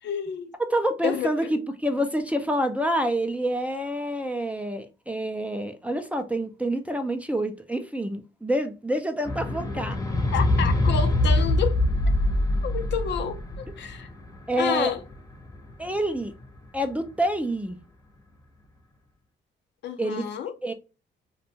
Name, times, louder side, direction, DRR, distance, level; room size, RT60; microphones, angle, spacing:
voice 1, 0.0-0.5 1.0-1.6 10.3-11.8 12.6-14.1 14.6-15.0 19.8-20.5, left 7 dB, 60° left, 0.5 m, -30 dB
voice 2, 0.7-10.0 14.5-14.9 15.8-16.3 16.7-17.8 20.0-20.2 20.6-20.7, right 1 dB, 5° right, 0.4 m, -27 dB
sound 1, 9.3-15.7 16.5-16.6, left 1 dB, 15° left, 0.8 m, -24 dB
2.5 x 2.2 x 2.9 m
cardioid pair, 90°, 20 cm